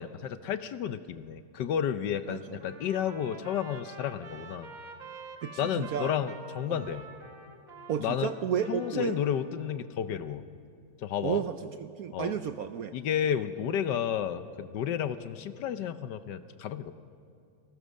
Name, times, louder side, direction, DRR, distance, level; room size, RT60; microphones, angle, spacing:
voice 1, 0.0-4.7 5.6-7.1 8.0-8.3 8.7-10.5 11.0-11.4 12.1-12.4 12.9-16.9, left 9 dB, 70° left, 12 dB, 1.3 m, -32 dB
voice 2, 2.3-2.6 5.4-6.1 6.7-6.8 7.9-9.2 11.2-13.0, right 8 dB, 65° right, 10 dB, 0.9 m, -32 dB
Trumpet, 2.6-9.7, right 4 dB, 45° right, 1.9 m, -48 dB
28.5 x 19.5 x 6.5 m, 2.5 s
omnidirectional pair, 2.1 m